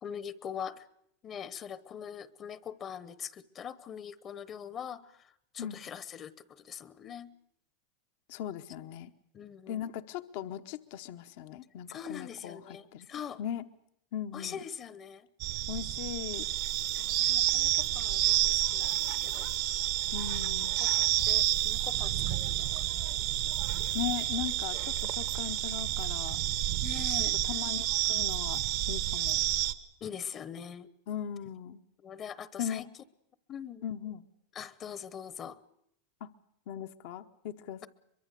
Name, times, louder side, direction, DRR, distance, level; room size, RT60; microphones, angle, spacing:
voice 1, 0.0-0.8 1.2-7.3 9.3-9.8 11.9-13.4 14.3-15.3 17.0-19.5 20.6-22.9 26.8-27.4 30.0-30.9 32.0-32.9 33.5-33.8 34.5-35.6, left 8 dB, 35° left, 18 dB, 0.9 m, -43 dB
voice 2, 8.3-9.1 9.7-13.1 13.4-13.6 14.1-14.6 15.7-16.4 20.1-20.8 23.9-26.4 27.4-29.4 31.1-31.8 32.6-32.9 33.8-34.3 36.2-36.3 36.7-37.9, left 9 dB, 65° left, 9 dB, 0.9 m, -38 dB
sound 1, 15.4-29.7, right 14 dB, 60° right, 1.2 m, -30 dB
23.0 x 23.0 x 6.7 m, 0.75 s
hypercardioid pair, 115°, 0 cm